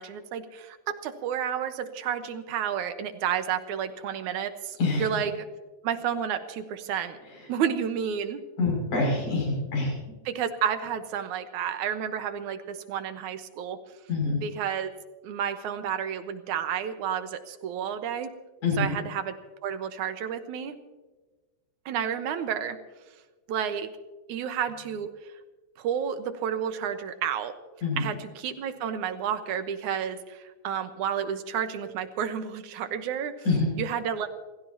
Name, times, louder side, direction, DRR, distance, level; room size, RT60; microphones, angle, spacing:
voice 1, 0.0-5.5 5.8-7.2 7.5-8.4 10.3-13.8 14.4-14.9 15.2-18.3 18.8-19.3 19.6-20.8 21.9-22.8 23.5-23.9 24.3-25.3 25.8-27.5 28.0-33.3 33.8-34.3, right 8 dB, 85° right, 8 dB, 2.5 m, -31 dB
voice 2, 8.6-9.9 14.1-14.4 18.6-18.9 27.8-28.0 33.4-33.7, left 3 dB, 80° left, -2 dB, 7.9 m, -25 dB
27.5 x 15.5 x 2.8 m, 1.2 s
omnidirectional pair, 3.4 m